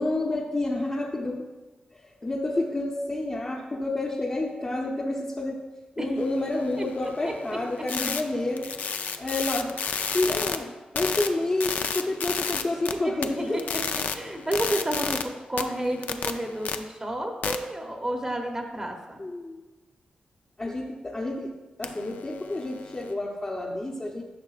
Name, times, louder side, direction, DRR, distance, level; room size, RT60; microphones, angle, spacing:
voice 1, 0.0-1.5 1.9-5.6 6.0-8.7 9.2-9.7 10.1-13.6 19.2-19.6 20.6-24.2, left 2 dB, 30° left, -2 dB, 0.7 m, -29 dB
sound 1, 6.2-10.6 11.0-12.9 13.2-15.2 15.6-16.7 17.4-17.6 21.8-23.1, left 6 dB, 80° left, 0.4 m, -32 dB
voice 2, 6.8-7.6 13.0-13.6 14.1-19.2, right 1 dB, 25° right, 2 dB, 0.9 m, -31 dB
10.5 x 5.9 x 2.4 m, 1.2 s
cardioid pair, 80°, 3 cm